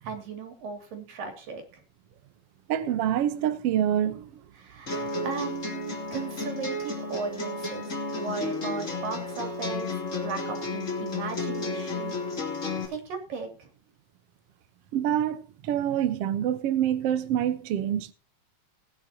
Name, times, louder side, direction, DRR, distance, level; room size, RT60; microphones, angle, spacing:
voice 1, 0.0-1.8 4.5-12.2 12.9-13.7, right 5 dB, 90° right, 4.4 m, -37 dB
voice 2, 2.7-4.3 14.9-18.1, right 10 dB, 65° right, 1.6 m, -26 dB
sound 1, 4.9-12.9, left 2 dB, 25° left, 3.2 m, -32 dB
20.0 x 9.4 x 2.9 m
omnidirectional pair, 3.8 m